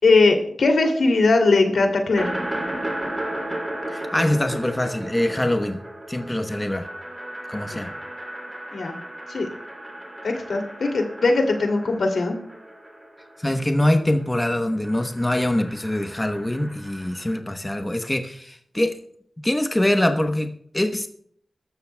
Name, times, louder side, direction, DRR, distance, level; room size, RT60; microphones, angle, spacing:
voice 1, 0.0-2.3 7.7-7.9 8.7-9.0 9.3-9.5 10.2-12.4, left 3 dB, 85° left, 3 dB, 2.7 m, -20 dB
sound 1, 2.1-13.9 14.2-17.3, right 1 dB, 20° right, 3.2 m, -35 dB
voice 2, 3.9-5.8 6.1-6.9 7.5-7.9 13.4-19.0 19.4-21.1, left 1 dB, 15° left, 5 dB, 1.0 m, -23 dB
22.0 x 13.0 x 2.3 m, 0.65 s
wide cardioid pair, 105°, 0 cm